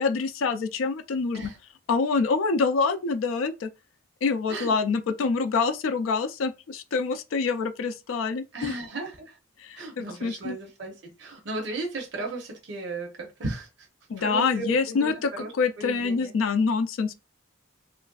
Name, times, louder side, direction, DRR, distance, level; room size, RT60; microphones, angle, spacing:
voice 1, 0.0-1.5 1.9-3.7 4.2-8.7 9.6-10.6 14.1-17.1, left 4 dB, 80° left, 0.4 m, -26 dB
voice 2, 8.5-9.4 9.8-13.9 14.2-15.1 15.4-15.5 15.8-16.3, right 2 dB, 60° right, 0.7 m, -35 dB
3.2 x 2.5 x 2.3 m
head